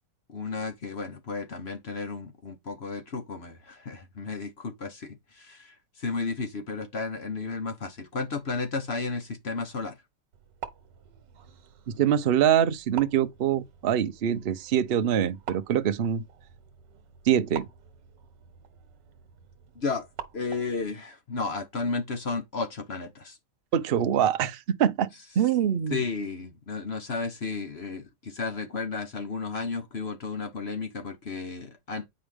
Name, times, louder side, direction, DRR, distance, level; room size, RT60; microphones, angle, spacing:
voice 1, 0.3-10.0 19.7-20.1 20.3-23.4 25.9-32.1, left 4 dB, 40° left, 1.2 m, -33 dB
sound 1, 10.3-20.9, right 8 dB, 85° right, 1.6 m, -46 dB
voice 2, 11.9-16.2 17.3-17.7 23.7-25.1 25.4-26.0, right 9 dB, 55° right, 0.6 m, -24 dB
8.9 x 4.8 x 3.5 m
omnidirectional pair, 1.8 m